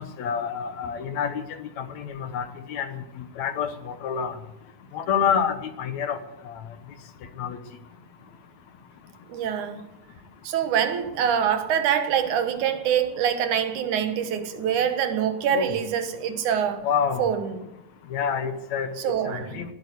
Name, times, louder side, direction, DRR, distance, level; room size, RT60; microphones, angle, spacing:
voice 1, 0.0-3.0 3.4-4.4 4.9-6.2 6.5-6.6 7.4-7.6 15.5-15.7 16.8-17.2 18.1-18.9 19.3-19.7, left 7 dB, 65° left, 2.2 m, -28 dB
voice 2, 9.3-9.9 10.4-16.9 17.2-17.6 19.0-19.6, right 8 dB, 70° right, 2.7 m, -25 dB
20.0 x 8.9 x 8.2 m
omnidirectional pair, 3.7 m